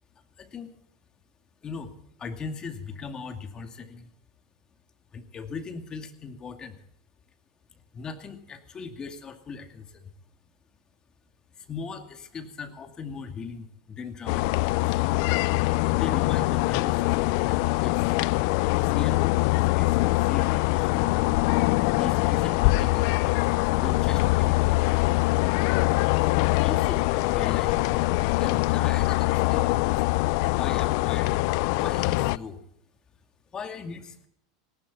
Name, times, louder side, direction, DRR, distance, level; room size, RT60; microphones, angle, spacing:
voice 1, 0.4-0.7 1.6-1.9 2.2-4.1 5.1-6.8 7.7-10.1 11.6-15.0 15.9-18.2 18.8-19.2 19.7-21.4 22.0-23.3 23.8-25.0 26.6-27.8 28.3-30.1 30.5-31.3 31.7-32.6 33.5-34.3, left 5 dB, 25° left, 6 dB, 2.3 m, -38 dB
sound 1, 14.3-32.4, left 21 dB, 60° left, 0.5 m, -23 dB
19.0 x 17.5 x 4.1 m, 0.77 s
supercardioid pair, 125°, 3 cm